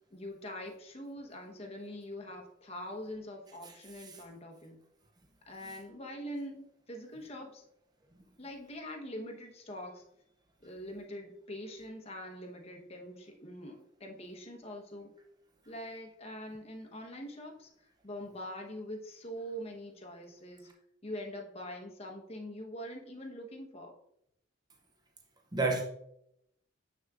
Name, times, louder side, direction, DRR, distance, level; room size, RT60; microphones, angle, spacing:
voice 1, 0.0-4.8 5.5-7.6 8.4-10.0 10.6-15.1 15.7-17.7 18.0-20.7 21.0-24.0, equal, 30° left, 1.0 m, -44 dB
voice 2, 3.6-4.2 25.5-25.8, right 3 dB, 20° right, 0.6 m, -32 dB
6.7 x 6.3 x 2.4 m
head